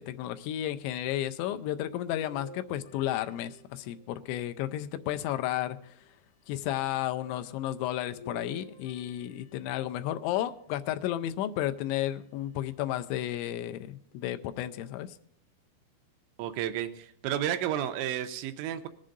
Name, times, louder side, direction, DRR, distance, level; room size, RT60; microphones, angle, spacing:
voice 1, 0.0-6.0 6.5-15.2, left 13 dB, 85° left, 9 dB, 3.0 m, -33 dB
sound 1, 2.1-4.4 5.1-6.1 8.1-10.2 11.1-12.0 12.6-12.7 14.1-14.2, equal, 70° left, 1.9 m, -52 dB
voice 2, 16.4-18.9, right 11 dB, 90° right, 8 dB, 3.1 m, -32 dB
21.0 x 7.5 x 3.8 m, 0.67 s
omnidirectional pair, 5.2 m